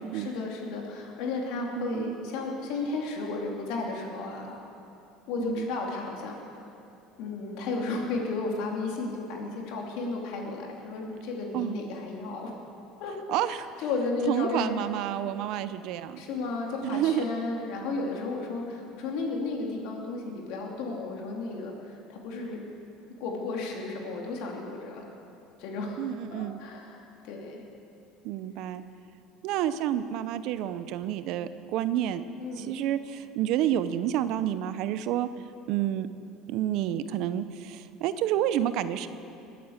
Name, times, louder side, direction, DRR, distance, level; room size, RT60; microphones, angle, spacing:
voice 1, 0.1-4.6 5.3-6.4 7.2-12.6 13.0-13.1 13.5-14.8 16.2-22.6 23.2-25.1 25.6-27.6 32.4-32.7, left 3 dB, 70° left, 0 dB, 2.9 m, -33 dB
voice 2, 1.8-2.2 5.4-5.7 11.5-11.8 13.3-13.7 14.3-16.2 16.8-17.3 26.0-26.6 28.2-28.8 29.4-32.2 32.6-35.3 35.7-36.1 36.5-39.1, right 11 dB, 65° right, 13 dB, 0.7 m, -29 dB
20.5 x 8.6 x 7.3 m, 2.7 s
supercardioid pair, 120°, 0 cm